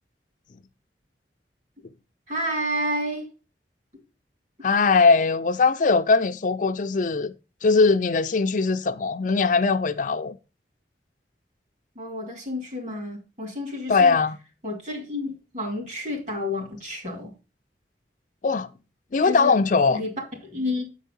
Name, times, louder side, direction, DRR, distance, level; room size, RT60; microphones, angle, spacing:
voice 1, 2.3-3.3 12.0-14.2 14.6-17.3 19.2-19.5 19.9-20.1 20.4-20.8, left 1 dB, 45° right, 2.8 m, -30 dB
voice 2, 4.6-7.3 7.6-10.4 13.9-14.4 18.4-18.7 19.1-20.0, left 4 dB, 45° left, 0.5 m, -20 dB
8.4 x 4.6 x 5.4 m
head